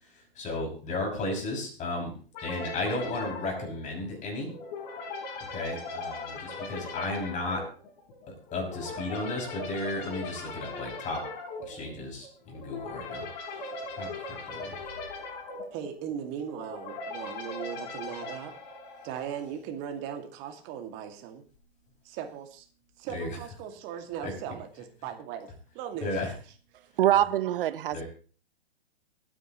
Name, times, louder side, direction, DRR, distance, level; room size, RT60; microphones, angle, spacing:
voice 1, 0.3-2.1 2.4-4.5 5.5-7.6 8.3-11.2 11.7-13.2 14.0-14.8 23.1-23.4 24.2-24.3 26.0-26.3 27.9-28.0, left 2 dB, 25° left, 6.5 m, -34 dB
sound 1, 2.3-19.5, left 3 dB, 45° left, 5.0 m, -39 dB
voice 2, 15.7-18.5 19.0-21.4 22.0-22.7 23.0-25.5 25.7-26.2, right 8 dB, 35° right, 2.3 m, -38 dB
voice 3, 27.0-28.0, right 12 dB, 60° right, 0.9 m, -24 dB
24.0 x 9.9 x 3.1 m
hypercardioid pair, 120°, 31 cm